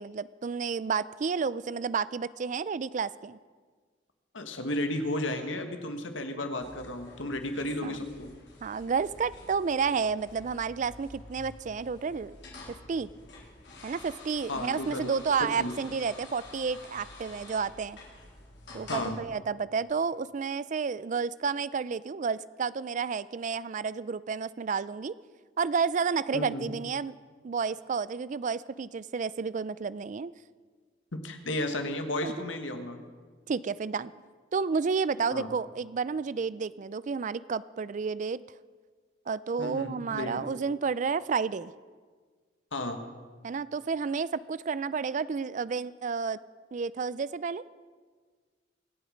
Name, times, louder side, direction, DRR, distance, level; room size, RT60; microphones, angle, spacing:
voice 1, 0.0-3.4 7.8-8.0 8.6-12.4 12.7-13.1 13.8-18.0 18.7-25.1 25.6-27.1 27.4-30.3 32.2-32.3 33.5-34.1 34.5-38.4 39.3-41.7 43.4-46.4 46.7-47.6, right 5 dB, 40° right, 18 dB, 0.4 m, -31 dB
voice 2, 4.3-8.3 14.5-15.1 15.4-15.7 18.9-19.2 26.3-26.7 31.1-33.0 35.3-35.5 39.6-40.4 42.7-43.0, left 1 dB, 85° left, 6 dB, 1.6 m, -33 dB
sound 1, 6.6-19.1, left 2 dB, 65° left, 3.9 m, -49 dB
24.5 x 8.4 x 5.1 m, 1.5 s
head